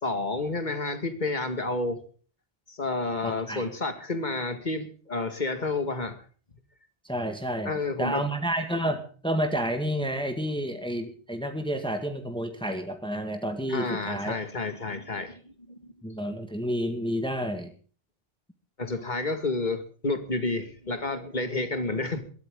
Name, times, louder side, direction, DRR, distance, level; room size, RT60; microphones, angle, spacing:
voice 1, 0.0-2.0 2.7-6.2 7.7-8.2 13.7-15.9 18.8-22.3, left 3 dB, 45° left, 8 dB, 2.3 m, -30 dB
voice 2, 3.2-3.7 7.0-7.7 8.0-14.4 16.0-17.7, equal, 5° left, 6 dB, 1.9 m, -30 dB
21.0 x 13.5 x 3.8 m, 0.40 s
omnidirectional pair, 1.1 m